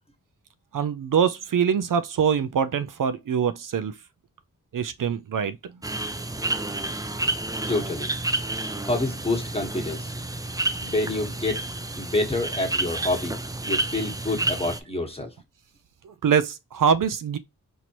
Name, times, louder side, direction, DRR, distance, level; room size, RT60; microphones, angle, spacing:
voice 1, 0.7-3.9 4.7-5.6 16.0-17.4, right 7 dB, 70° right, 0.5 m, -24 dB
sound 1, 5.8-14.8, right 2 dB, 10° right, 0.4 m, -30 dB
voice 2, 7.7-8.1 8.8-10.1 10.7-11.6 12.0-15.3, left 2 dB, 15° left, 1.3 m, -27 dB
4.3 x 2.7 x 2.9 m
wide cardioid pair, 75°, 33 cm